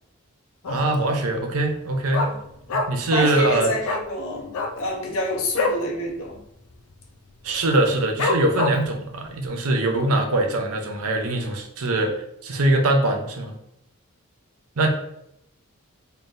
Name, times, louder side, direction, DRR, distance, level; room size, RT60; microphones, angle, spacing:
Dog, 0.6-1.1 1.4-1.5 1.7-3.2 3.4-3.5 3.8-4.1 4.4-5.9 6.2-6.4 6.6-7.1 7.5-7.6 8.2-9.0 9.5-9.6, left 3 dB, 85° left, 0.5 m, -26 dB
voice 1, 0.7-2.3 2.9-3.7 7.4-12.1 12.4-13.6 14.8-14.9, right 2 dB, 80° right, 3 dB, 0.7 m, -22 dB
voice 2, 3.1-6.4, left 1 dB, 70° left, -1 dB, 0.9 m, -28 dB
3.9 x 3.3 x 2.6 m, 0.80 s
head